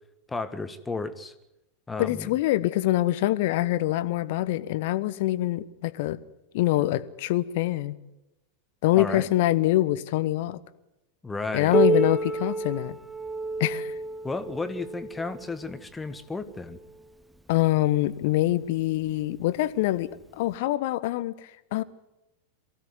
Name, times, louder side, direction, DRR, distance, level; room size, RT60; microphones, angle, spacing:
voice 1, 0.3-1.3 1.9-2.4 9.0-9.3 11.2-11.7 14.2-16.8, left 3 dB, 10° left, 1.7 m, -33 dB
voice 2, 2.0-6.2 6.5-8.0 8.8-10.6 11.5-13.0 13.6-13.9 17.5-21.8, left 15 dB, 50° left, 1.1 m, -25 dB
Piano, 11.7-17.0 17.9-18.0 18.5-18.6 19.4-19.5 20.5-20.6, right 3 dB, 5° right, 1.2 m, -29 dB
23.5 x 16.0 x 9.5 m
figure-of-eight pair, 90°, 0 cm